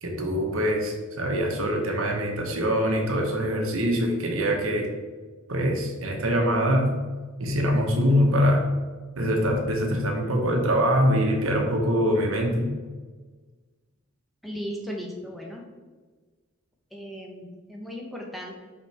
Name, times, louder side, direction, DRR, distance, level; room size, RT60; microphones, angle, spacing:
voice 1, 0.0-4.9 5.5-6.9 7.4-8.6 9.2-12.7, equal, 70° right, 1 dB, 1.2 m, -24 dB
voice 2, 14.4-15.6 16.9-18.5, equal, ahead, -1 dB, 0.8 m, -36 dB
5.6 x 5.3 x 3.4 m, 1.4 s
head